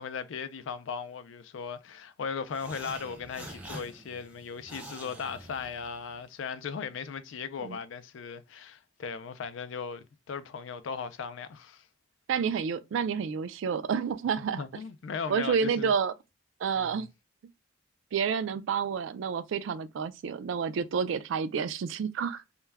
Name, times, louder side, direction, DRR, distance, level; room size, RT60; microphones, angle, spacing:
voice 1, 0.0-11.9 14.4-15.9 16.8-17.1, left 6 dB, 70° left, 0.4 m, -38 dB
sound 1, 2.5-6.2, right 1 dB, 5° right, 0.5 m, -46 dB
voice 2, 12.3-14.6 15.3-16.1 16.6-17.1 18.1-22.4, right 6 dB, 70° right, 0.3 m, -29 dB
2.2 x 2.1 x 3.2 m
head